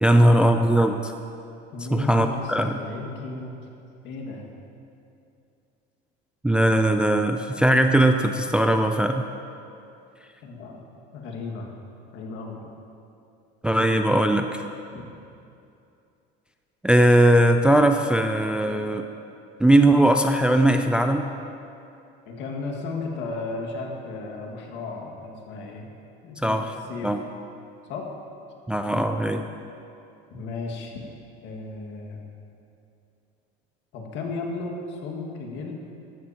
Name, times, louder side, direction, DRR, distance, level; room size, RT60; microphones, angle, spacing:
voice 1, 0.0-1.1 1.9-2.8 6.4-9.2 13.6-14.6 16.8-19.0 19.6-21.3 26.4-26.6 27.0-27.2 28.7-29.5, right 1 dB, 5° right, 6 dB, 0.3 m, -19 dB
voice 2, 1.7-3.6 4.0-4.4 10.4-10.8 11.1-11.7 12.1-12.6 14.9-15.0 22.3-25.9 26.2-26.6 26.9-27.2 27.9-28.1 30.3-31.0 31.4-32.2 33.9-35.7, left 3 dB, 60° left, 1 dB, 1.9 m, -34 dB
14.0 x 12.5 x 2.9 m, 2.7 s
cardioid pair, 125°, 21 cm